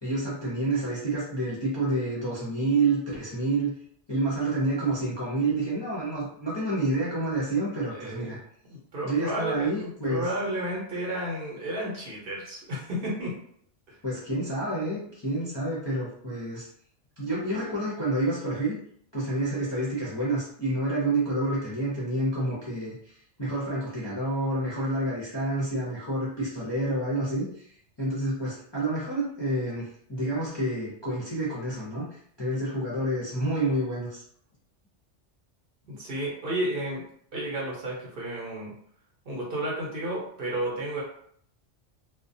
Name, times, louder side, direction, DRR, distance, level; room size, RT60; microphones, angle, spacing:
voice 1, 0.0-3.7 4.1-8.4 9.0-10.3 14.0-16.7 17.2-18.8 19.1-27.7 28.0-32.1 32.4-34.2, right 2 dB, 30° left, -9 dB, 0.5 m, -28 dB
voice 2, 7.9-8.4 8.7-13.3 36.0-37.0 37.3-38.7 39.2-41.0, right 1 dB, 55° right, -4 dB, 0.9 m, -32 dB
2.3 x 2.1 x 2.6 m, 0.64 s
omnidirectional pair, 1.2 m